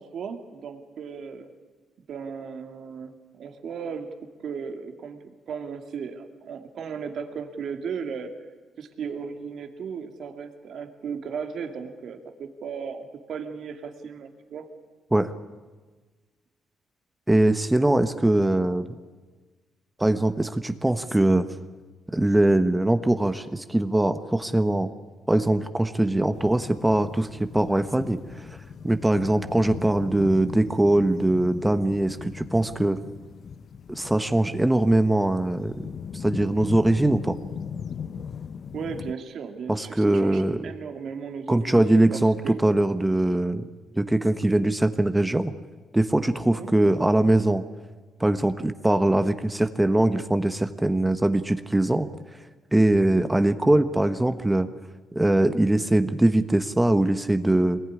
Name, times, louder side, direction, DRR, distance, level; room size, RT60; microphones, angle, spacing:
voice 1, 0.0-1.5 2.1-8.3 8.8-14.7 38.7-42.5 46.5-46.7, right 6 dB, 65° right, 6 dB, 2.6 m, -36 dB
voice 2, 17.3-18.9 20.0-21.5 22.1-24.9 25.3-28.5 28.8-33.0 33.9-35.7 36.1-37.4 39.7-40.7 41.5-43.6 43.9-45.5 45.9-47.6 48.2-52.1 52.7-54.7 55.1-57.8, right 1 dB, 10° right, 10 dB, 1.2 m, -22 dB
sound 1, 26.3-39.1, left 7 dB, 55° left, 0.8 m, -39 dB
23.5 x 20.5 x 9.9 m, 1.4 s
cardioid pair, 90°, 0 cm